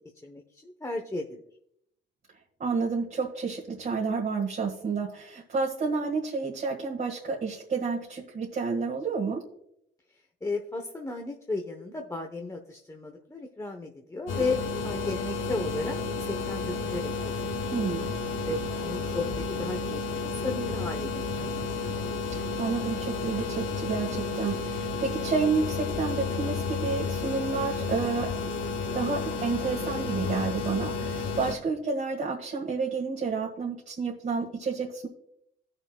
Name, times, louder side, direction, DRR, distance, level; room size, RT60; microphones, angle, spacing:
voice 1, 0.2-1.4 10.4-17.1 17.6-17.9 18.5-21.6, left 3 dB, 15° left, 2 dB, 0.9 m, -34 dB
voice 2, 2.6-9.4 17.7-18.1 22.6-28.3 28.9-35.1, right 4 dB, 45° right, -2 dB, 1.7 m, -30 dB
sound 1, 14.3-31.5, left 4 dB, 75° left, 1.8 m, -32 dB
18.5 x 6.5 x 2.3 m, 0.74 s
cardioid pair, 90°, 20 cm